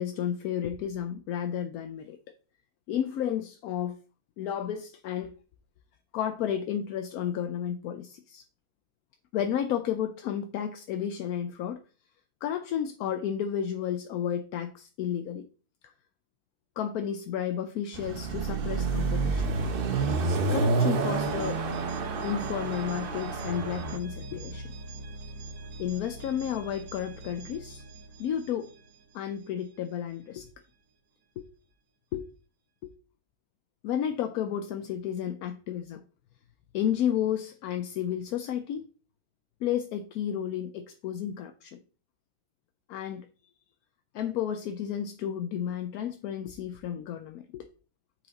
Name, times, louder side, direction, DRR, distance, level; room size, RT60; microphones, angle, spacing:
voice 1, 0.0-2.2 2.9-4.0 4.4-5.3 6.1-8.4 9.3-11.8 12.4-15.5 15.8-15.9 16.8-19.5 20.5-21.6 22.2-24.7 25.8-27.8 28.2-28.7 29.1-30.5 31.4-31.5 32.1-32.3 32.8-32.9 33.8-36.0 36.7-38.9 39.6-41.8 42.9-43.3 44.1-47.7, left 9 dB, 70° left, 1.0 m, -32 dB
Car passing by / Accelerating revving vroom, 17.9-24.0, right 4 dB, 55° right, 0.6 m, -29 dB
sound 1, 18.9-29.7, right 2 dB, 80° right, 1.7 m, -43 dB
7.8 x 4.8 x 4.0 m
omnidirectional pair, 1.9 m